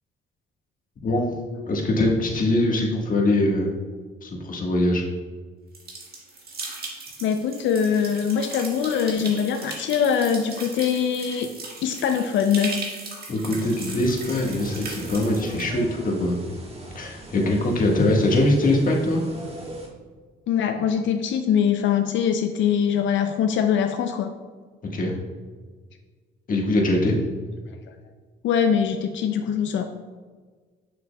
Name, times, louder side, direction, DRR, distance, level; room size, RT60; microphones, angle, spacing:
voice 1, 1.7-3.7 4.2-5.0 13.3-16.4 16.9-19.2 24.9-25.2 26.5-27.2, left 1 dB, 45° left, -1 dB, 1.4 m, -22 dB
sound 1, 5.7-15.7, right 3 dB, 50° right, 1.6 m, -38 dB
voice 2, 7.2-11.5 11.8-12.7 20.5-24.3 27.7-27.9 28.4-29.8, left 7 dB, 70° left, 6 dB, 0.5 m, -23 dB
sound 2, 13.7-19.9, right 1 dB, 30° right, 1.4 m, -41 dB
6.8 x 6.2 x 2.2 m, 1.5 s
cardioid pair, 90°, 20 cm